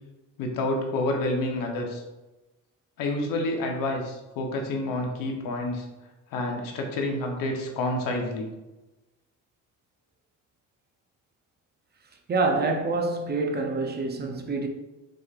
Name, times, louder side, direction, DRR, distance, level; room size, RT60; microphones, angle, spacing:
voice 1, 0.4-2.0 3.0-5.9 6.3-8.5, left 2 dB, 85° left, 1.0 m, -28 dB
voice 2, 12.3-14.7, right 3 dB, 30° right, 0.7 m, -26 dB
6.0 x 3.3 x 2.5 m
cardioid pair, 115°, 33 cm